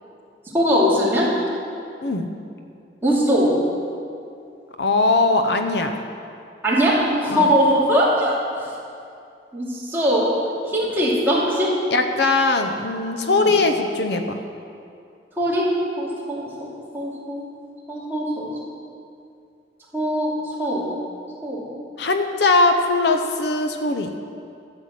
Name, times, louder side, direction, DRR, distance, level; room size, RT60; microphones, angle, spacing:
voice 1, 0.5-1.3 3.0-3.5 6.6-8.3 9.5-10.3 10.6-11.7 13.3-13.5 15.4-15.6 16.0-16.7 16.9-17.4 17.9-18.5 19.9-20.3 20.6-20.9 21.4-21.6, equal, 10° right, -7 dB, 2.6 m, -21 dB
voice 2, 4.8-6.0 7.3-7.5 11.9-14.4 22.0-24.1, left 3 dB, 65° left, 6 dB, 0.8 m, -20 dB
12.0 x 8.0 x 7.5 m, 2.5 s
head